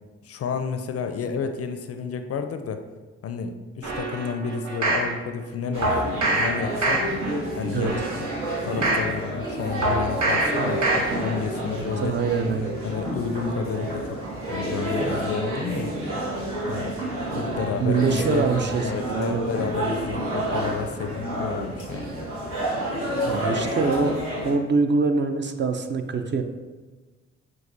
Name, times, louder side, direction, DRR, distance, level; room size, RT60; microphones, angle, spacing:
voice 1, 0.2-2.8 3.2-7.0 7.6-8.3 8.6-12.2 12.8-14.2 14.5-15.9 16.7-17.0 17.3-18.5 18.8-22.1, left 6 dB, 50° left, 8 dB, 0.4 m, -31 dB
sound 1, 3.8-5.1 5.8-6.5 6.8-7.3 7.8-9.1 9.8-10.5 10.8-11.3 11.7-11.8, right 2 dB, 55° right, 0.9 m, -25 dB
sound 2, 5.7-24.5, right 1 dB, 75° right, 1.3 m, -29 dB
voice 2, 12.0-12.7 17.8-19.4 23.3-24.1 24.4-26.4, right 4 dB, 35° right, 7 dB, 0.4 m, -24 dB
6.0 x 2.3 x 2.6 m, 1.3 s
hypercardioid pair, 45°, 32 cm